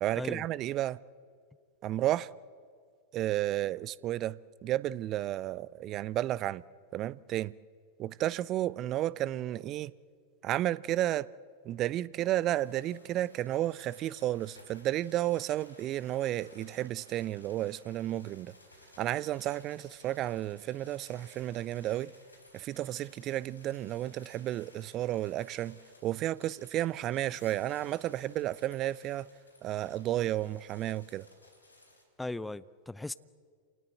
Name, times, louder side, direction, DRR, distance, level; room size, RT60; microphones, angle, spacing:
voice 1, 0.0-1.0 1.8-2.3 3.1-6.6 6.9-7.5 8.0-9.9 10.4-11.3 11.6-18.5 19.0-22.1 22.5-25.8 26.0-29.3 29.6-31.2, right 14 dB, 35° right, 0.5 m, -32 dB
sound 1, 12.3-32.0, left 1 dB, 80° left, 4.0 m, -59 dB
voice 2, 32.2-33.1, left 2 dB, 5° left, 0.6 m, -37 dB
28.5 x 18.5 x 7.8 m
figure-of-eight pair, 90°, 0 cm